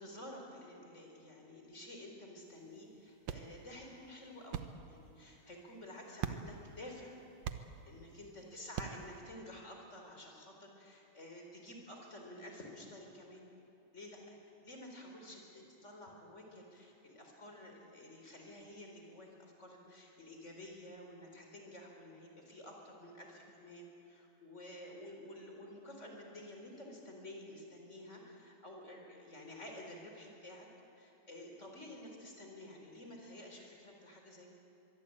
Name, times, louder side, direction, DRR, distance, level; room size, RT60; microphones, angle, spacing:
voice 1, 0.0-7.2 7.9-13.4 13.9-14.4 14.6-30.7 31.0-34.5, left 1 dB, 25° left, 1 dB, 4.4 m, -51 dB
sound 1, 2.4-9.2, right 8 dB, 65° right, 2.0 m, -46 dB
23.5 x 23.5 x 8.8 m, 2.7 s
omnidirectional pair, 3.4 m